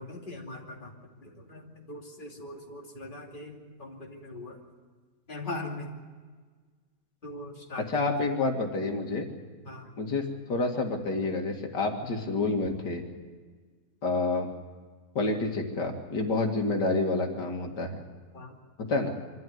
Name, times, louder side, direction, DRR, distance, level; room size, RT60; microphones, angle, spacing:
voice 1, 0.0-4.6 5.3-5.9 7.2-8.2 9.6-9.9 16.4-16.5 18.3-18.5, left 2 dB, 30° left, -1 dB, 2.9 m, -41 dB
voice 2, 7.9-9.3 10.0-13.0 14.0-14.5 15.1-18.0 18.8-19.1, left 3 dB, 85° left, 2 dB, 2.7 m, -28 dB
25.5 x 13.0 x 9.3 m, 1.5 s
omnidirectional pair, 1.8 m